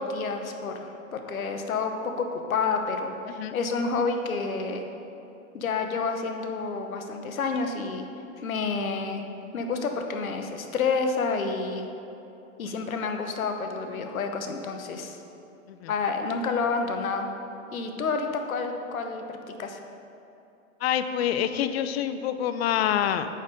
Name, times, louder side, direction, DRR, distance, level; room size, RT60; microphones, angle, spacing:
voice 1, 0.0-4.9 5.5-8.1 8.4-9.2 9.5-11.9 12.6-15.2 15.9-17.3 17.7-19.8, left 4 dB, 90° left, 5 dB, 1.0 m, -29 dB
voice 2, 20.8-23.3, left 10 dB, 50° left, 10 dB, 0.5 m, -26 dB
8.5 x 4.3 x 5.1 m, 2.9 s
hypercardioid pair, 130°, 40 cm